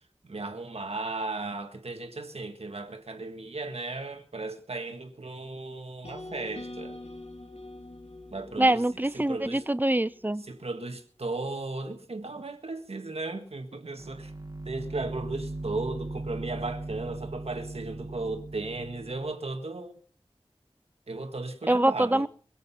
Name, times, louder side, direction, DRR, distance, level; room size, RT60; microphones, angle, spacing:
voice 1, 0.2-6.9 8.3-8.8 9.1-9.6 10.5-14.3 14.7-20.0 21.1-22.3, right 3 dB, 80° right, 1.8 m, -36 dB
sound 1, 6.0-10.2, left 2 dB, 80° left, 2.7 m, -44 dB
voice 2, 8.6-10.4 21.7-22.3, right 1 dB, 15° right, 0.6 m, -24 dB
sound 2, 14.0-19.3, right 2 dB, 35° right, 2.4 m, -38 dB
22.5 x 8.1 x 5.7 m
wide cardioid pair, 55°, 10 cm